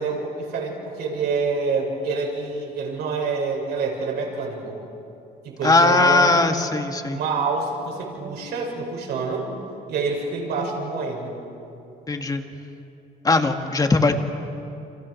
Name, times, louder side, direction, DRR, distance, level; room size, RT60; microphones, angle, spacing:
voice 1, 0.0-4.8 5.4-6.4 7.1-9.5 9.9-11.4, right 4 dB, 75° right, 0 dB, 7.1 m, -27 dB
voice 2, 5.6-7.2 12.1-12.4 13.2-14.1, left 3 dB, 20° left, 5 dB, 2.1 m, -19 dB
30.0 x 27.0 x 6.6 m, 2.7 s
cardioid pair, 110°, 17 cm